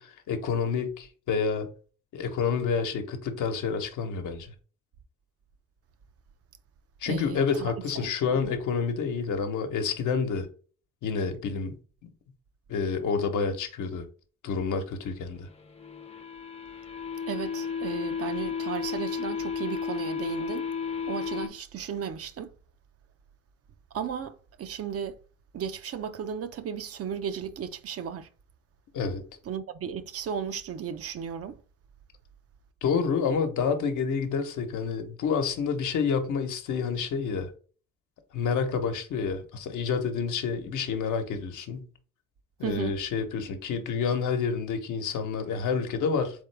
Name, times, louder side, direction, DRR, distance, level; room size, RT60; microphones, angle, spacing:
voice 1, 0.0-1.7 2.1-4.5 7.0-10.5 11.0-11.8 12.7-14.0 14.4-15.5 28.9-29.2 32.8-37.5 38.3-41.9 42.6-46.4, left 5 dB, 75° left, 1.0 m, -28 dB
voice 2, 7.1-7.7 8.0-8.1 8.4-8.5 17.3-20.7 21.1-22.5 23.9-25.2 25.5-28.3 29.4-31.6 42.6-43.0, right 8 dB, 50° right, 0.6 m, -35 dB
sound 1, 15.5-21.5, left 6 dB, 20° left, 0.6 m, -33 dB
3.8 x 3.6 x 3.3 m
cardioid pair, 90°, 30 cm